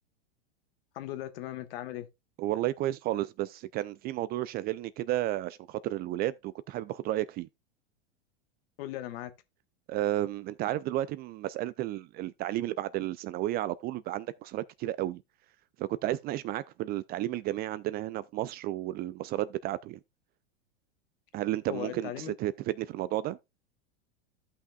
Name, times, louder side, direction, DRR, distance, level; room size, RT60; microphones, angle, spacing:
voice 1, 0.9-2.1 8.8-9.3 21.7-22.3, left 13 dB, 65° left, 1.3 m, -38 dB
voice 2, 2.4-7.5 9.9-15.2 15.8-20.0 21.3-23.4, right 14 dB, 30° right, 0.3 m, -32 dB
14.5 x 5.7 x 2.3 m
hypercardioid pair, 105°, 32 cm